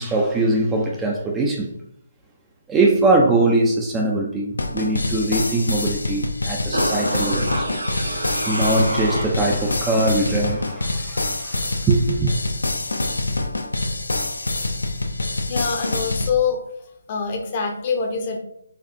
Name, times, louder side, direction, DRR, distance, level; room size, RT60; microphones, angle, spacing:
voice 1, 0.0-1.7 2.7-7.7 8.5-12.3, right 2 dB, 10° right, -1 dB, 0.4 m, -21 dB
sound 1, 4.6-16.3, left 2 dB, 75° left, 0.5 m, -26 dB
sound 2, 6.7-9.7 10.0-10.1, right 1 dB, 80° right, 1.0 m, -27 dB
voice 2, 15.5-16.6 17.1-18.4, left 5 dB, 30° left, 2 dB, 0.6 m, -24 dB
4.3 x 2.3 x 2.6 m, 0.73 s
figure-of-eight pair, 150°, 0 cm